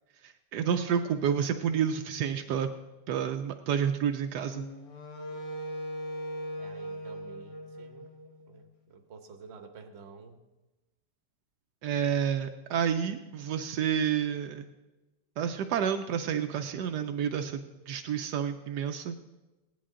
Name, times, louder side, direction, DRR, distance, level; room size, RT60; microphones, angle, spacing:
voice 1, 0.2-2.7 3.1-4.6 11.8-14.7 15.4-17.6 17.9-19.2, right 8 dB, 75° right, 6 dB, 1.2 m, -29 dB
Wind instrument woodwind instrument, 4.5-8.7, equal, 80° left, 1.8 m, -40 dB
voice 2, 6.6-8.1 8.5-10.4, right 4 dB, 45° right, 6 dB, 1.1 m, -50 dB
16.5 x 10.5 x 3.7 m, 1.1 s
omnidirectional pair, 1.8 m